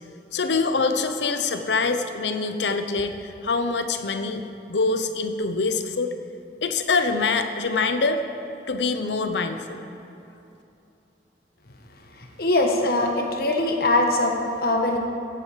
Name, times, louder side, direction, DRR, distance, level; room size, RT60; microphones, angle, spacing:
voice 1, 0.3-3.1 3.4-6.1 6.6-8.2 8.7-9.8, left 4 dB, 80° left, 8 dB, 0.8 m, -24 dB
voice 2, 12.4-15.0, left 2 dB, 60° left, 2 dB, 1.4 m, -22 dB
14.5 x 8.6 x 5.0 m, 2.8 s
head